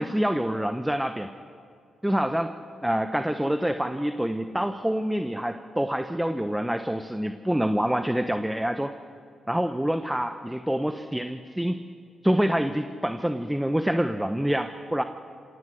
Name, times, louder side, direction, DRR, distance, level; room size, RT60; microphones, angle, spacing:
voice 1, 0.0-1.3 2.0-2.5 2.8-8.9 9.5-11.8 12.2-15.0, equal, 5° right, 9 dB, 1.0 m, -26 dB
26.0 x 17.5 x 6.4 m, 2.4 s
hypercardioid pair, 45°, 0 cm